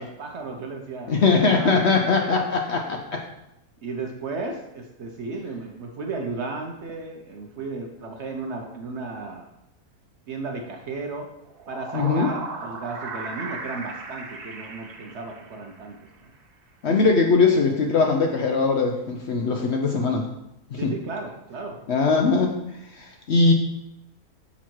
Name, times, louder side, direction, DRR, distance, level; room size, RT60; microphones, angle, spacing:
voice 1, 0.0-2.5 3.8-9.5 10.3-11.3 11.7-16.3 20.8-21.8 22.1-22.3, right 3 dB, 55° right, 2 dB, 0.8 m, -34 dB
voice 2, 1.1-3.2 11.9-12.3 16.8-20.3 20.7-20.9 21.9-22.5 23.0-23.5, left 4 dB, 60° left, 2 dB, 0.7 m, -21 dB
sound 1, 11.4-15.9, right 4 dB, 80° right, 1.5 m, -36 dB
6.1 x 4.0 x 4.5 m, 0.86 s
omnidirectional pair, 1.6 m